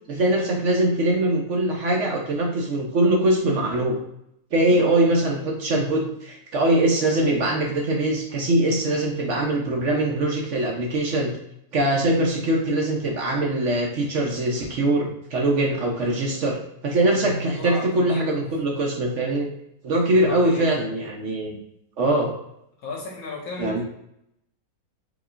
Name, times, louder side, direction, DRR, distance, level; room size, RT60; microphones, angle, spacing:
voice 1, 0.1-4.0 4.5-11.3 11.7-16.6 16.8-19.5 19.8-21.6 22.0-22.3 23.6-23.8, right 1 dB, 60° right, 0 dB, 1.0 m, -22 dB
voice 2, 16.9-18.5 20.1-20.8 22.8-23.8, left 2 dB, 70° left, -2 dB, 1.4 m, -35 dB
4.8 x 3.1 x 2.5 m, 0.75 s
omnidirectional pair, 1.6 m